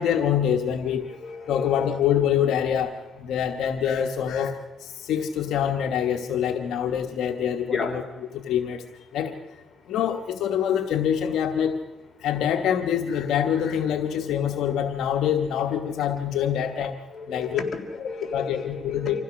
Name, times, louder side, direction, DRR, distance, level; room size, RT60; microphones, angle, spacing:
voice 1, 0.0-1.1 1.5-2.9 3.2-4.5 4.8-8.0 8.3-8.8 9.1-9.4 9.9-11.8 12.2-17.0 17.3-17.6 18.0-19.2, left 9 dB, 80° left, 5 dB, 1.2 m, -25 dB
voice 2, 1.1-1.9 7.7-8.0 16.8-19.2, left 4 dB, 40° left, 2 dB, 3.9 m, -34 dB
26.0 x 15.5 x 6.3 m, 1.3 s
cardioid pair, 90°, 0 cm